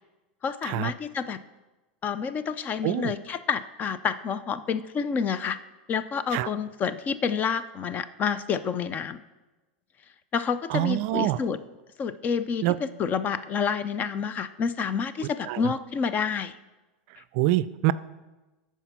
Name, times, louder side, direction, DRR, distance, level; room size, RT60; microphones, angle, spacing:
voice 1, 0.4-1.4 2.0-5.6 5.9-9.2 10.3-11.6 12.0-16.5 17.2-17.3, left 6 dB, 30° left, 13 dB, 0.5 m, -29 dB
voice 2, 2.8-3.1 6.3-6.5 10.7-11.4 12.6-12.8 15.5-15.7 17.3-17.9, right 16 dB, 55° right, 16 dB, 0.4 m, -25 dB
12.5 x 4.6 x 5.9 m, 1.1 s
hypercardioid pair, 115°, 6 cm